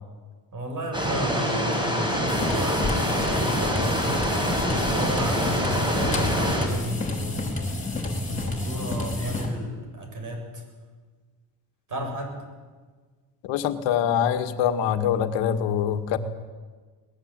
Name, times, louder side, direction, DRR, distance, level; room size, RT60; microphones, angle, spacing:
voice 1, 0.5-4.2 4.7-7.4 8.3-10.6 11.9-12.4, right 1 dB, 45° right, 3 dB, 8.0 m, -33 dB
sound 1, 0.9-6.7, equal, 10° right, 6.1 m, -25 dB
sound 2, 2.3-9.5, left 2 dB, 15° left, 4.7 m, -30 dB
voice 2, 13.4-16.2, left 9 dB, 85° left, 8 dB, 2.0 m, -24 dB
22.5 x 19.5 x 9.0 m, 1.4 s
cardioid pair, 130°, 43 cm